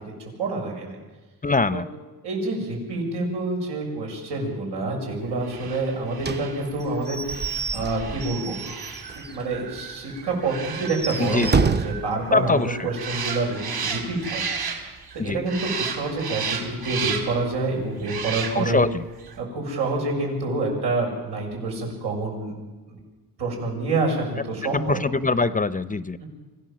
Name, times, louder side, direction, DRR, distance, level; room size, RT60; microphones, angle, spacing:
voice 1, 0.2-1.0 1.7-1.8 2.2-7.2 7.7-14.4 15.1-18.8 19.4-22.6 22.9-23.0 23.4-25.0 26.2-26.3, right 2 dB, 85° right, 0 dB, 7.5 m, -27 dB
voice 2, 1.4-1.9 11.2-11.6 12.3-12.9 15.2-15.4 18.5-19.0 24.6-26.2, left 3 dB, 20° left, 15 dB, 0.7 m, -23 dB
sound 1, 5.4-15.2 15.5-17.5 18.0-18.9 19.2-19.3, right 5 dB, 70° right, 3.9 m, -34 dB
Slam / Squeak / Wood, 6.2-9.4 9.8-9.9 10.2-10.3 10.8-12.1, right 4 dB, 25° right, 0.8 m, -28 dB
25.0 x 15.5 x 7.6 m, 1.2 s
cardioid pair, 100°, 40 cm